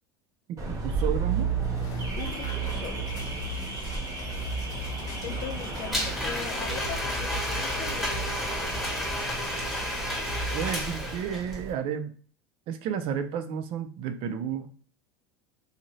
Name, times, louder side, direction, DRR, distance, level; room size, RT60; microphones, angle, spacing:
Car / Alarm, 0.6-11.7, right 5 dB, 25° right, 0.9 m, -34 dB
voice 1, 0.7-1.5 10.5-12.1 12.7-14.7, right 8 dB, 45° right, 8 dB, 0.5 m, -31 dB
sound 1, 1.7-10.8, left 2 dB, 30° left, 1.0 m, -39 dB
voice 2, 2.2-3.3 5.2-8.2, left 9 dB, 45° left, 9 dB, 0.4 m, -40 dB
Domestic sounds home sounds, 5.9-11.6, equal, ahead, 1.1 m, -31 dB
2.6 x 2.4 x 3.1 m, 0.42 s
supercardioid pair, 130°, 13 cm